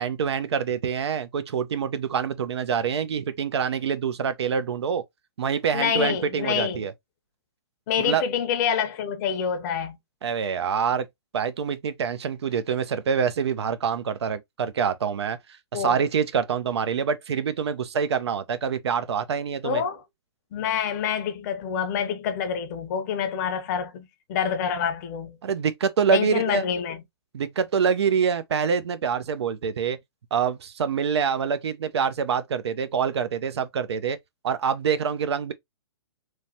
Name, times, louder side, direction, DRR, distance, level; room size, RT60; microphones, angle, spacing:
voice 1, 0.0-5.0 5.4-6.9 8.0-8.2 10.2-11.1 11.3-15.4 15.7-19.8 25.4-26.6 27.3-30.0 30.3-34.2 34.4-35.5, right 6 dB, 75° right, 0.5 m, -26 dB
voice 2, 5.7-6.8 7.9-10.0 15.7-16.0 19.6-20.0 20.5-25.4 26.1-27.0, left 8 dB, 40° left, 0.6 m, -27 dB
3.1 x 2.1 x 2.7 m
hypercardioid pair, 130°, 14 cm